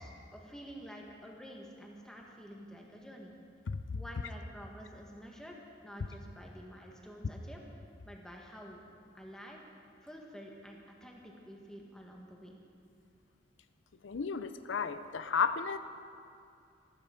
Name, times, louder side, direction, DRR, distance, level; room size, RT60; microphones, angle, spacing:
voice 1, 0.0-3.3 3.9-5.6 5.8-7.6 8.0-8.8 9.1-9.6 10.0-12.6, equal, 5° left, -1 dB, 1.6 m, -49 dB
voice 2, 14.0-15.8, left 6 dB, 85° left, 11 dB, 0.5 m, -33 dB
14.0 x 14.0 x 5.1 m, 2.5 s
head